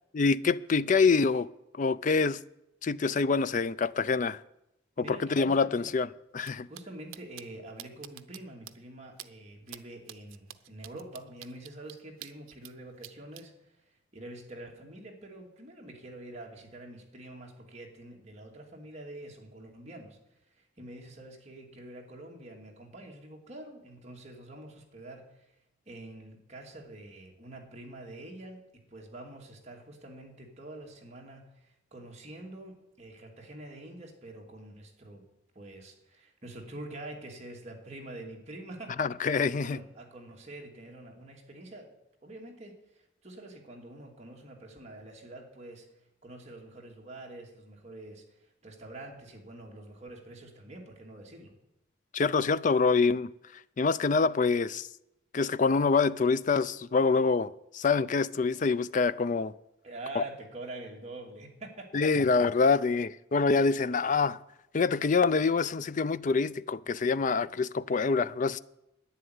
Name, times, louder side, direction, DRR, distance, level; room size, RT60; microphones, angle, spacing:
voice 1, 0.1-1.5 1.8-2.4 2.8-4.4 5.0-6.1 6.3-6.7 39.0-39.8 52.1-53.3 53.8-54.9 55.3-59.5 60.2-60.3 61.9-64.4 64.7-68.6, left 4 dB, 40° left, 0.4 m, -26 dB
voice 2, 5.0-5.9 6.7-13.8 14.1-20.2 20.5-25.5 25.9-28.7 28.9-35.3 35.5-39.0 39.4-41.9 42.2-45.9 46.2-51.5 59.8-62.0, right 2 dB, 35° right, 2.5 m, -46 dB
sound 1, 6.4-6.5 6.7-6.8 7.1-7.4 7.8-8.4 8.7-8.8 9.2-9.3 9.7-9.8 10.1-12.7 13.0-13.4, right 12 dB, 90° right, 0.7 m, -46 dB
11.5 x 9.9 x 9.5 m
head